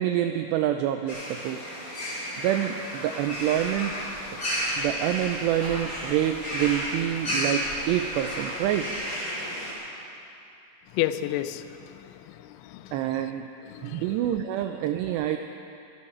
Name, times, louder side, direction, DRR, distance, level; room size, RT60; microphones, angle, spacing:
voice 1, 0.0-1.7 2.4-3.9 4.8-9.0 12.9-13.5 13.8-15.4, right 11 dB, 90° right, 7 dB, 2.4 m, -27 dB
sound 1, 1.1-9.7, equal, 20° left, 4.0 m, -32 dB
Dog, 3.2-9.1, right 1 dB, 40° right, 4.7 m, -45 dB
voice 2, 10.9-13.3 13.6-14.3, left 13 dB, 85° left, 12 dB, 2.9 m, -33 dB
23.5 x 11.0 x 4.3 m, 2.7 s
omnidirectional pair, 5.4 m